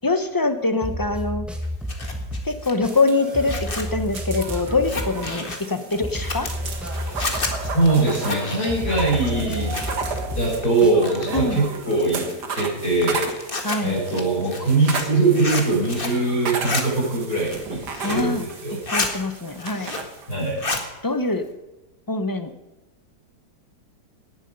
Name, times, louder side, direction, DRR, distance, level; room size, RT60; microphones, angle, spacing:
voice 1, 0.0-1.5 2.4-6.5 11.3-11.6 13.6-14.0 18.0-18.5 18.9-19.9 21.0-21.5 22.1-22.5, left 3 dB, 15° left, 9 dB, 0.9 m, -24 dB
sound 1, 0.8-11.5, left 1 dB, ahead, 2.0 m, -31 dB
Zipper (clothing), 1.6-10.2 10.5-11.4 11.9-16.2 16.5-16.8 17.3-18.3 18.6-19.1 19.5-20.2 20.4-20.9, left 3 dB, 35° left, 2.0 m, -31 dB
sound 2, 2.8-20.5, right 4 dB, 80° right, 2.2 m, -34 dB
voice 2, 7.7-9.7 10.3-12.2 12.5-13.5 13.8-18.8 20.3-20.6, right 2 dB, 65° left, -8 dB, 7.1 m, -22 dB
18.5 x 11.0 x 5.4 m, 1.1 s
omnidirectional pair, 1.8 m